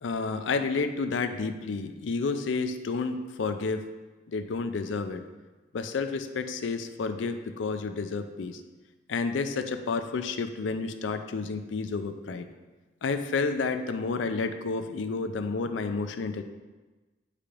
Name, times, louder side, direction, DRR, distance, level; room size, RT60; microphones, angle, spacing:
voice 1, 0.0-3.8 4.3-5.2 5.7-8.6 9.1-12.5 13.0-16.4, left 4 dB, 85° left, 8 dB, 0.4 m, -30 dB
8.4 x 4.9 x 2.5 m, 1.2 s
head